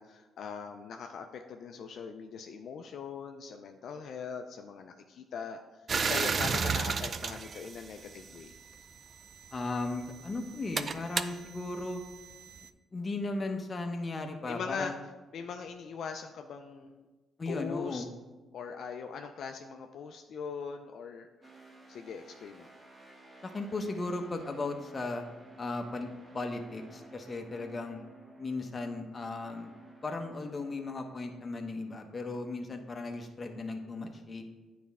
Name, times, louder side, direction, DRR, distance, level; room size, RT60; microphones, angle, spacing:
voice 1, 0.0-5.6 6.0-8.5 14.5-14.9 15.3-17.0 17.5-18.0 18.5-22.7, left 6 dB, 65° left, 5 dB, 0.4 m, -41 dB
sound 1, 5.9-8.5 9.4-12.7, right 5 dB, 45° right, 0.4 m, -34 dB
voice 2, 9.5-12.0 12.9-15.0 17.4-18.1 23.4-25.2 25.6-28.0 28.4-29.7 30.0-34.4, left 2 dB, 30° left, 4 dB, 0.9 m, -36 dB
sound 2, 21.4-32.0, right 2 dB, 20° right, 1.2 m, -54 dB
9.2 x 4.2 x 3.5 m, 1.2 s
cardioid pair, 90°, 0 cm